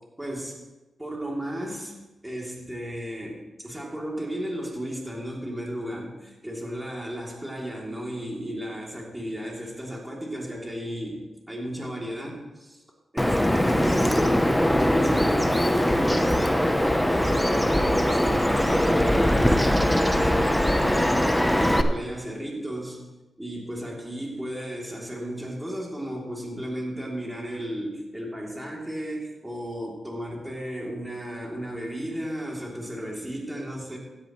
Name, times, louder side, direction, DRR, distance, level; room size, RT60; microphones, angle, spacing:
voice 1, 0.2-0.6 1.0-2.0 2.2-6.1 6.4-12.8 13.1-14.1 14.6-23.0 23.4-34.0, equal, 10° right, -2 dB, 3.1 m, -34 dB
Bird vocalization bird call bird song, 13.2-21.8, equal, 5° left, 0.8 m, -21 dB
16.0 x 10.5 x 3.2 m, 1.1 s
cardioid pair, 80°, 0 cm